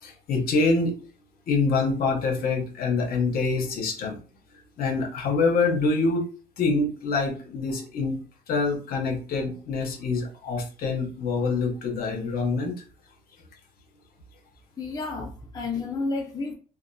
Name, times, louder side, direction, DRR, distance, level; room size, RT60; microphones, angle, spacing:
voice 1, 0.0-0.9 1.5-4.2 4.8-6.3 6.6-8.2 8.5-12.8, left 3 dB, 60° left, 0.8 m, -25 dB
voice 2, 14.8-16.5, left 3 dB, 20° left, 0.5 m, -31 dB
2.7 x 2.1 x 2.2 m
cardioid pair, 110°, 17 cm